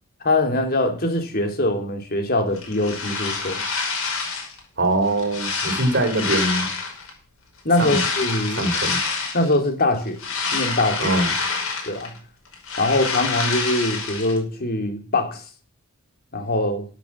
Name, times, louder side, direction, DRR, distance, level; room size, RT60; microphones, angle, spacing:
voice 1, 0.2-3.6 7.6-8.7 9.3-10.2 10.5-11.1 11.9-12.1 12.8-15.4 16.3-16.9, left 2 dB, 45° left, 3.0 m, -22 dB
sound 1, 2.6-4.6 5.0-7.1 7.7-9.5 9.9-12.2 12.5-14.4, left 4 dB, 80° left, 5.6 m, -27 dB
voice 2, 4.8-6.7 7.8-8.0 8.5-9.0 11.0-11.3, right 2 dB, 55° right, 3.7 m, -22 dB
13.0 x 8.2 x 7.4 m
head